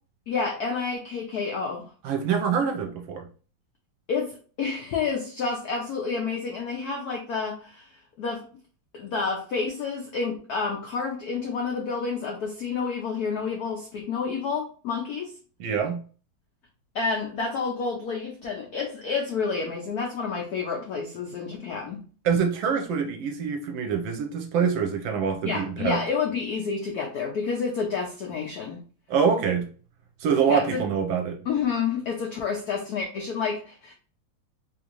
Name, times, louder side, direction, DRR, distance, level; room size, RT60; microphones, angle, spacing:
voice 1, 0.3-1.9 4.1-7.9 8.2-8.4 8.9-15.3 16.9-22.0 25.4-28.8 30.5-30.8 31.5-33.9, left 5 dB, 80° left, 0.8 m, -29 dB
voice 2, 2.0-3.3 15.6-16.0 22.2-26.0 29.1-29.7 30.2-31.4, right 6 dB, 70° right, 1.3 m, -25 dB
3.6 x 2.6 x 2.9 m
omnidirectional pair, 2.3 m